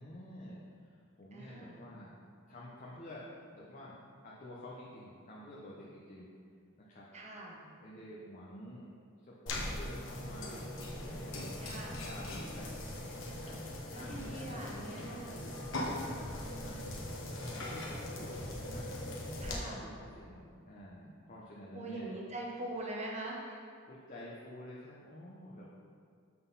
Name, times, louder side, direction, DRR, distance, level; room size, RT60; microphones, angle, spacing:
voice 1, 0.0-2.1 2.5-3.2 3.5-4.0 4.2-6.3 6.8-7.1 7.8-8.9 9.2-12.8 13.3-13.5 13.9-15.6 16.1-18.8 19.4-22.1 23.8-25.7, left 1 dB, 40° left, -6 dB, 0.9 m, -50 dB
voice 2, 1.3-1.8 7.1-7.6 11.6-12.0 13.9-15.3 19.4-19.8 21.7-23.6, right 1 dB, 35° right, -2 dB, 1.0 m, -42 dB
sound 1, 9.5-19.5, left 1 dB, 65° left, 1.2 m, -40 dB
7.7 x 4.0 x 5.5 m, 2.2 s
head